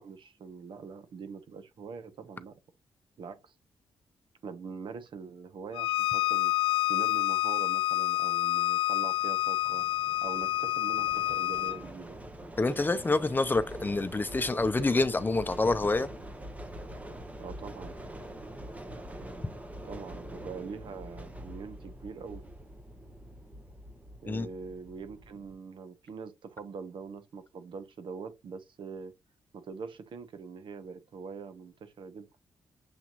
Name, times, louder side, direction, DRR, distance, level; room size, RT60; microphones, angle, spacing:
voice 1, 0.0-2.5 3.2-3.5 4.4-6.5 6.9-9.9 10.2-12.2 17.4-17.9 19.8-22.4 24.2-29.1 29.5-32.3, right 5 dB, 70° right, 1.1 m, -43 dB
Bowed string instrument, 5.7-11.8, left 15 dB, 85° left, 0.4 m, -28 dB
sound 1, 9.1-25.6, right 1 dB, 15° right, 1.0 m, -45 dB
voice 2, 12.6-16.1 24.3-24.5, left 3 dB, 20° left, 0.7 m, -27 dB
7.1 x 2.9 x 2.5 m
cardioid pair, 85°, 9 cm